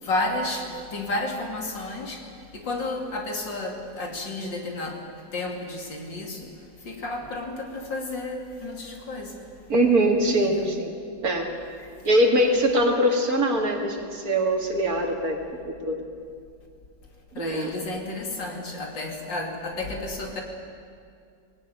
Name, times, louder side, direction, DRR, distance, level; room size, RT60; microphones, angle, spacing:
voice 1, 0.0-2.2 2.5-5.0 5.3-6.5 6.8-9.3 10.4-10.7 17.4-20.4, left 2 dB, 80° left, 1 dB, 3.5 m, -31 dB
voice 2, 9.7-10.9 11.2-11.5 12.0-15.4 15.6-16.0 17.4-17.7, right 1 dB, 55° right, 2 dB, 2.7 m, -22 dB
20.0 x 18.0 x 9.4 m, 2.3 s
omnidirectional pair, 1.9 m